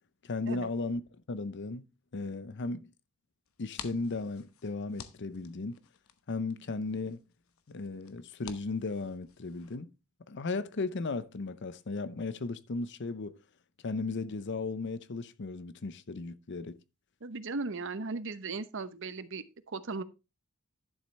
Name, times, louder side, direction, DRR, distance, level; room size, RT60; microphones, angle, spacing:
voice 1, 0.2-1.0 1.3-1.9 2.1-2.9 3.6-5.8 6.3-7.2 7.7-9.9 10.3-13.4 13.8-16.8, left 3 dB, 55° left, 0.7 m, -36 dB
sound 1, 3.4-9.7, left 7 dB, 75° left, 1.0 m, -51 dB
voice 2, 17.2-20.0, right 3 dB, 60° right, 0.9 m, -37 dB
11.5 x 7.1 x 3.3 m
head